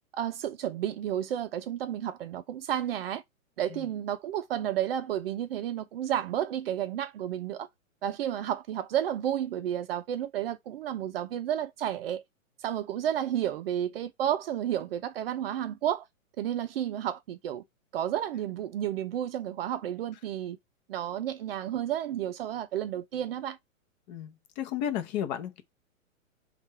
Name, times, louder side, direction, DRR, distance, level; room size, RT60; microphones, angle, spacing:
voice 1, 0.1-3.2 3.6-7.7 8.0-12.2 12.6-16.1 16.4-17.6 17.9-20.6 20.9-23.6, right 10 dB, 45° right, 0.6 m, -31 dB
voice 2, 24.1-25.6, left 10 dB, 30° left, 0.9 m, -33 dB
3.6 x 2.5 x 4.1 m
hypercardioid pair, 135°, 41 cm